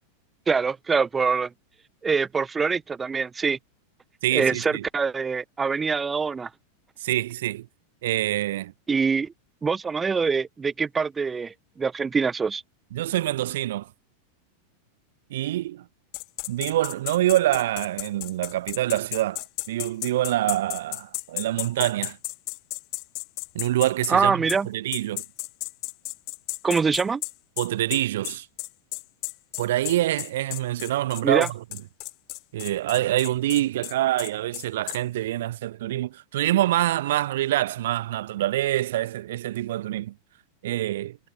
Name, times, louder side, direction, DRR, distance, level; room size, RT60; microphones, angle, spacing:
voice 1, 0.5-1.5 2.0-3.6 4.3-6.5 8.9-9.3 9.6-12.6 24.1-24.7 26.6-27.2 31.2-31.5, right 5 dB, 15° right, 1.5 m, -24 dB
voice 2, 4.2-4.8 7.0-7.7 8.0-8.7 12.9-13.9 15.3-15.8 16.5-22.2 23.5-25.2 27.6-28.5 29.6-31.6 32.5-40.1 40.6-41.2, right 14 dB, 55° right, 1.3 m, -26 dB
sound 1, 16.1-24.1 24.5-24.6 24.9-35.0, left 26 dB, 40° left, 4.4 m, -34 dB
figure-of-eight pair, 90°, 0 cm